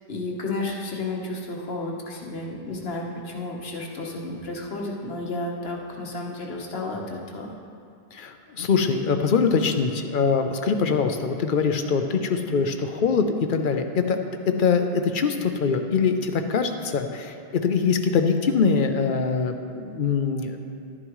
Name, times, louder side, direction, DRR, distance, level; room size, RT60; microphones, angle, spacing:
voice 1, 0.1-7.6, left 2 dB, 75° left, -1 dB, 1.4 m, -32 dB
voice 2, 8.1-14.2 14.6-20.6, left 5 dB, 60° left, 6 dB, 0.8 m, -23 dB
12.0 x 9.9 x 3.1 m, 2.4 s
omnidirectional pair, 1.0 m